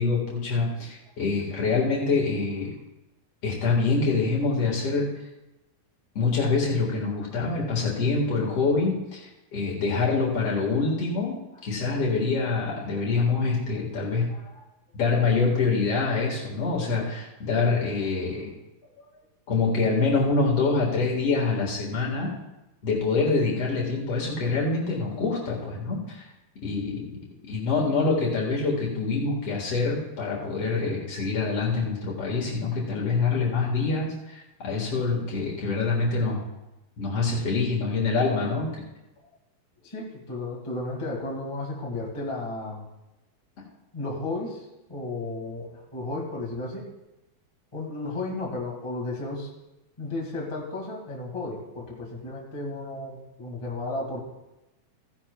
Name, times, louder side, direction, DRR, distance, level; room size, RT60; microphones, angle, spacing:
voice 1, 0.0-2.7 3.4-5.1 6.2-14.3 14.9-18.5 19.5-22.3 22.8-26.2 26.6-27.1 27.5-36.4 37.0-38.7, left 4 dB, 50° left, -3 dB, 2.2 m, -25 dB
voice 2, 14.3-14.7 19.0-19.1 39.8-42.9 43.9-46.9 47.7-49.5 50.0-54.2, left 2 dB, 20° left, -2 dB, 0.8 m, -34 dB
16.0 x 10.0 x 2.3 m, 0.96 s
omnidirectional pair, 4.3 m